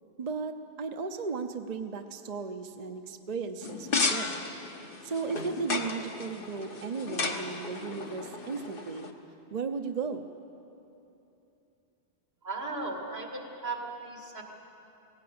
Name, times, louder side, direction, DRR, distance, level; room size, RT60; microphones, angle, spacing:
voice 1, 0.2-4.4 5.0-9.1 9.5-10.2, right 5 dB, 45° right, 6 dB, 0.8 m, -35 dB
sound 1, 3.6-9.1, left 4 dB, 60° left, 1.3 m, -34 dB
voice 2, 12.4-14.4, right 3 dB, 85° right, 1 dB, 2.6 m, -36 dB
18.0 x 16.5 x 8.6 m, 2.9 s
omnidirectional pair, 1.0 m